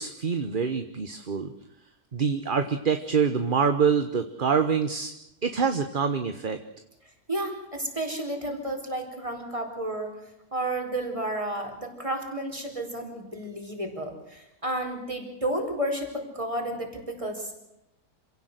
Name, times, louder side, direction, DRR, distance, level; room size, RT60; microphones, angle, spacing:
voice 1, 0.0-1.5 2.1-5.1 5.4-6.6, right 6 dB, 35° right, 8 dB, 1.2 m, -25 dB
voice 2, 7.3-10.1 10.5-17.5, right 1 dB, 20° right, 4 dB, 4.6 m, -32 dB
27.0 x 17.0 x 8.0 m, 0.88 s
omnidirectional pair, 1.6 m